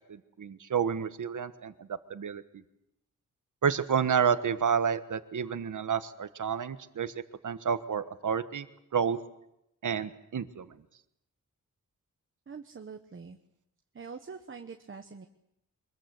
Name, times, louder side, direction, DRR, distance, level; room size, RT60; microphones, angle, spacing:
voice 1, 0.1-2.4 3.6-7.1 7.4-8.7 8.9-9.2 9.8-10.7, right 7 dB, 65° right, 11 dB, 1.4 m, -30 dB
voice 2, 12.5-13.4 13.9-15.3, right 5 dB, 40° right, 5 dB, 1.2 m, -44 dB
24.0 x 21.5 x 7.8 m, 0.82 s
wide cardioid pair, 140°, 32 cm